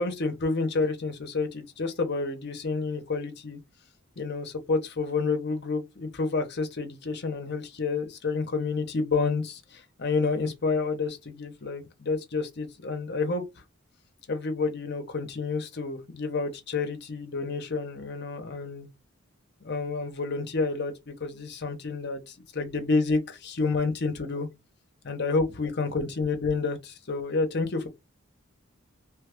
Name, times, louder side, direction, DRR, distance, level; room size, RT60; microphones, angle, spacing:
voice 1, 0.0-3.6 4.2-13.4 14.3-18.9 19.6-24.5 25.0-27.9, left 4 dB, 55° left, 0.7 m, -29 dB
3.0 x 2.3 x 3.4 m
head